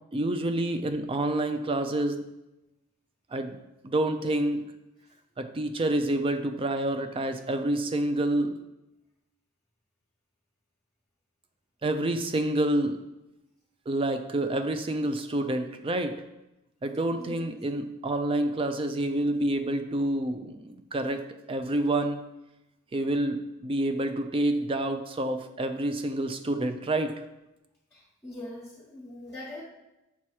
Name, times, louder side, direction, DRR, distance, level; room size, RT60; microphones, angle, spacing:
voice 1, 0.1-2.2 3.3-3.6 3.8-4.7 5.4-8.6 11.8-13.0 13.9-16.2 16.8-21.2 21.5-22.2 22.9-23.4 23.6-27.1, right 1 dB, 25° right, 8 dB, 0.4 m, -28 dB
voice 2, 17.1-17.5 27.9-29.6, left 1 dB, 10° left, -7 dB, 1.0 m, -42 dB
7.0 x 2.9 x 4.7 m, 0.94 s
head